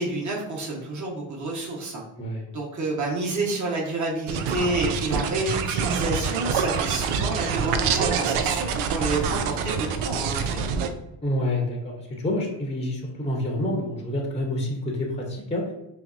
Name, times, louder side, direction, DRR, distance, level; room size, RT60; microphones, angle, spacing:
voice 1, 0.0-2.0 2.5-10.6, right 2 dB, 35° right, -3 dB, 1.3 m, -29 dB
sound 1, 4.3-10.9, right 6 dB, 85° right, 0.6 m, -26 dB
voice 2, 11.2-15.6, left 1 dB, 15° left, 0 dB, 0.8 m, -28 dB
5.5 x 2.0 x 2.6 m, 0.92 s
supercardioid pair, 70°, 48 cm